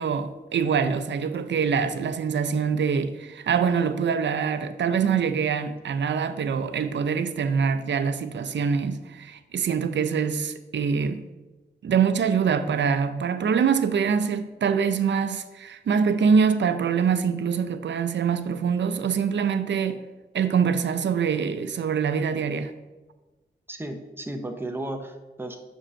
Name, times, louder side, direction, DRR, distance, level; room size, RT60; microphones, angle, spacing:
voice 1, 0.0-11.3 11.8-20.0 20.3-22.7, right 6 dB, 85° right, 0.5 m, -24 dB
voice 2, 23.7-25.6, right 1 dB, 10° right, 0.6 m, -34 dB
5.5 x 5.1 x 6.3 m
wide cardioid pair, 155°, 18 cm